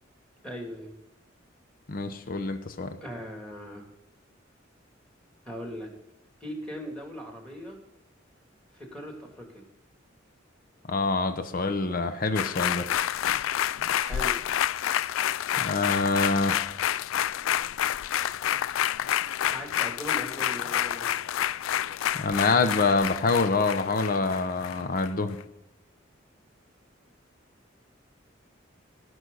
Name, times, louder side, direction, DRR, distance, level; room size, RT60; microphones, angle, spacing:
voice 1, 0.4-0.9 3.0-3.9 5.5-5.9 6.4-7.8 8.7-9.6 14.0-14.4 19.5-21.1, equal, 5° left, 2 dB, 2.7 m, -39 dB
voice 2, 1.9-3.0 10.9-12.9 15.6-16.6 22.1-25.4, left 3 dB, 45° left, 8 dB, 0.8 m, -26 dB
sound 1, 12.4-25.1 25.4-25.5, left 11 dB, 85° left, 0.3 m, -29 dB
17.5 x 6.4 x 4.0 m, 0.92 s
head